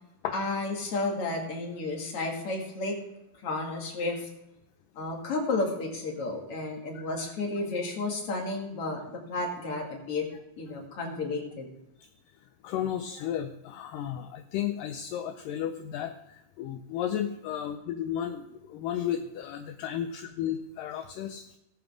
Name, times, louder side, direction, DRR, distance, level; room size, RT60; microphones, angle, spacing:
voice 1, 0.3-2.9 3.4-4.3 5.0-10.2 10.6-11.7, left 3 dB, 40° left, 0 dB, 2.7 m, -32 dB
voice 2, 7.0-7.3 12.6-16.1 16.6-21.5, left 10 dB, 80° left, 6 dB, 2.0 m, -33 dB
19.5 x 7.5 x 3.6 m, 0.87 s
omnidirectional pair, 4.5 m